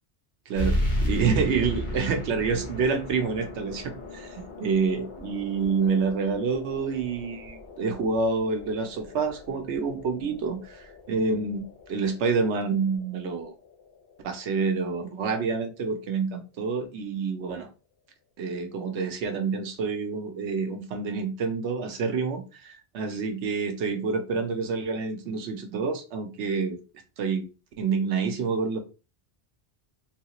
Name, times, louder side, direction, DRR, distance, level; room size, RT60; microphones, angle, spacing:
sound 1, 0.5-15.6, equal, 45° left, 1.0 m, -35 dB
voice 1, 0.5-13.5 14.2-17.7 18.4-26.8 27.2-27.5 27.8-28.8, right 5 dB, 80° right, 6 dB, 1.0 m, -28 dB
3.8 x 2.4 x 2.9 m, 0.31 s
omnidirectional pair, 1.2 m